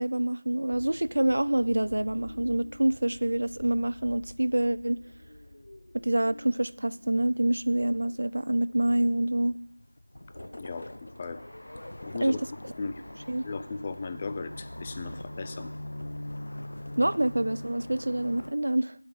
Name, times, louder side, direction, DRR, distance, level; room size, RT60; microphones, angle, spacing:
voice 1, 0.0-5.0 6.0-9.6 12.2-12.4 13.3-13.4 17.0-18.9, right 1 dB, 60° right, 17 dB, 0.3 m, -26 dB
sound 1, 0.7-18.5, left 1 dB, 65° left, 0.7 m, -44 dB
voice 2, 10.6-10.9 11.2-11.4 12.0-12.4 12.8-13.0 13.4-15.7, left 4 dB, 15° left, 10 dB, 0.4 m, -36 dB
7.5 x 5.9 x 7.5 m, 0.79 s
figure-of-eight pair, 175°, 0 cm